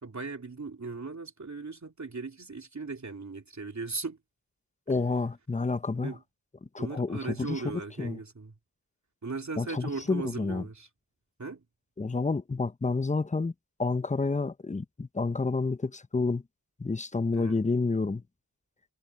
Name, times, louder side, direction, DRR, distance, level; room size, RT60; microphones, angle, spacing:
voice 1, 0.0-4.2 6.0-6.2 6.8-8.5 9.2-10.9 11.4-11.6 17.3-17.6, right 4 dB, 45° right, 3.3 m, -38 dB
voice 2, 4.9-6.1 6.7-7.6 8.0-8.2 9.6-10.6 12.0-13.5 13.8-16.4 16.8-18.2, left 3 dB, 20° left, 0.6 m, -29 dB
wide cardioid pair, 75°, 38 cm